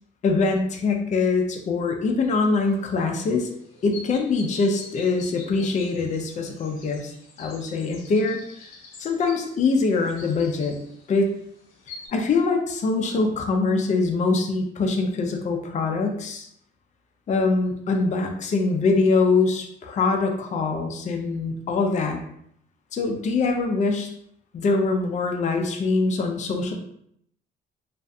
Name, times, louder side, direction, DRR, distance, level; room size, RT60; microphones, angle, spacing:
voice 1, 0.2-3.5 3.8-7.1 7.4-8.4 9.0-10.7 11.1-11.3 12.1-16.5 17.3-22.2 22.9-24.1 24.5-26.7, left 3 dB, 35° left, 3 dB, 0.4 m, -23 dB
sound 1, 2.5-12.1, left 3 dB, 85° left, 0.7 m, -46 dB
2.5 x 2.4 x 2.2 m, 0.70 s
cardioid pair, 90°, 20 cm